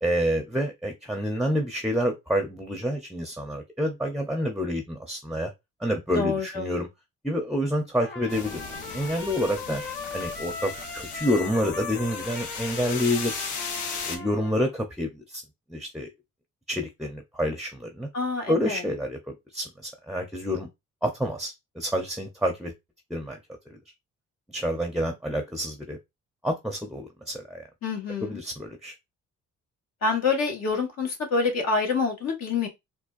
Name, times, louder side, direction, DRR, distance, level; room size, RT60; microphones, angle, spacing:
voice 1, 0.0-5.5 5.8-6.9 7.2-8.6 8.9-9.8 10.1-13.5 14.1-15.4 15.7-16.1 16.7-18.1 18.5-19.2 19.5-20.7 21.0-22.7 23.1-23.4 23.7-23.8 24.5-26.0 26.4-27.6 28.2-28.9, equal, ahead, 0.7 m, -28 dB
voice 2, 6.1-6.7 18.1-18.8 27.8-28.4 30.0-32.7, left 4 dB, 60° left, 1.4 m, -27 dB
Trumpet, 8.0-14.7, left 4 dB, 35° left, 1.3 m, -38 dB
sound 1, 8.3-14.2, left 5 dB, 75° left, 1.0 m, -37 dB
4.4 x 2.2 x 2.5 m
cardioid pair, 90°, 30 cm